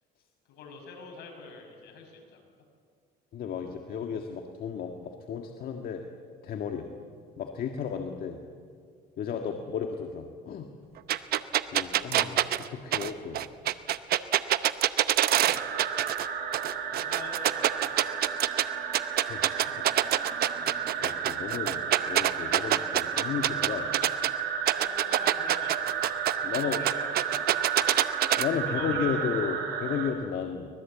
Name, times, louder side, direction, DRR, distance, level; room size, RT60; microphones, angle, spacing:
voice 1, 0.4-2.4 15.3-15.8 16.9-18.4 24.7-26.1 26.4-27.1 27.6-28.1 28.5-29.4, left 4 dB, 80° left, 2 dB, 6.6 m, -46 dB
voice 2, 3.3-6.0 6.4-6.9 7.4-8.4 9.2-10.7 11.7-13.4 19.0-19.4 19.8-19.9 20.6-21.8 22.1-23.9 26.4-26.8 28.4-30.7, left 7 dB, 60° left, 4 dB, 1.7 m, -33 dB
sound 1, 11.1-16.3 16.5-18.6 18.9-24.3 24.7-28.4, right 13 dB, 65° right, 0.8 m, -25 dB
sound 2, 15.5-30.1, right 7 dB, 80° right, 4.1 m, -33 dB
24.5 x 20.0 x 8.5 m, 2.1 s
cardioid pair, 110°, 17 cm